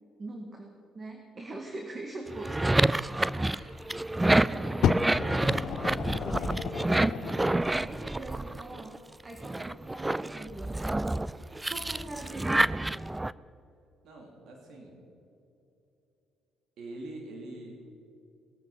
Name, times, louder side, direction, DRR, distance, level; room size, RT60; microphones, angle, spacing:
voice 1, 0.2-2.6 3.0-12.7, right 2 dB, 35° right, 2 dB, 1.9 m, -43 dB
sound 1, 2.3-9.0 9.4-13.3, right 2 dB, 15° right, 0.3 m, -28 dB
Fire, 4.8-7.6 8.5-8.6, left 9 dB, 65° left, 0.5 m, -32 dB
voice 2, 14.0-15.0 16.8-17.9, right 2 dB, 70° right, 0 dB, 3.0 m, -44 dB
20.0 x 9.0 x 5.7 m, 2.8 s
supercardioid pair, 70°, 0 cm